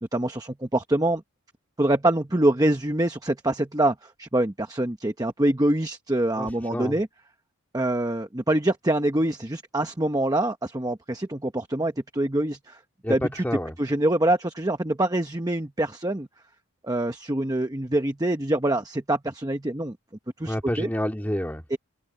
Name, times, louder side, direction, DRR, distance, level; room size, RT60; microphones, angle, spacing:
voice 1, 0.1-1.2 1.8-7.1 7.7-12.8 13.1-13.4 13.8-16.3 16.8-20.0 20.4-20.9 21.7-21.8, right 1 dB, 15° right, 1.0 m, -25 dB
voice 2, 6.4-7.0 13.0-13.8 20.4-21.6, equal, 10° left, 2.4 m, -29 dB
head